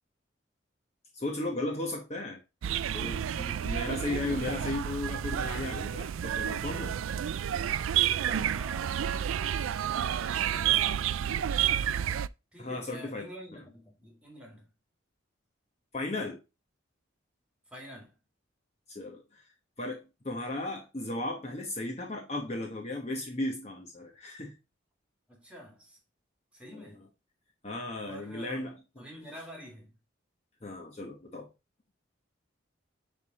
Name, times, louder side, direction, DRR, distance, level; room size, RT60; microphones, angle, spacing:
voice 1, 1.1-2.4 2.9-7.0 12.6-13.2 15.9-16.4 18.9-19.2 19.8-24.5 26.7-26.9 27.6-28.7 30.6-31.5, left 2 dB, 30° left, 1.1 m, -35 dB
sound 1, 2.6-12.3, right 10 dB, 85° right, 0.4 m, -30 dB
voice 2, 8.2-9.0 10.1-11.3 12.5-14.7 17.7-18.2 25.3-26.0 26.5-27.1 28.0-30.0, equal, 5° right, 2.4 m, -47 dB
10.0 x 3.5 x 4.2 m
head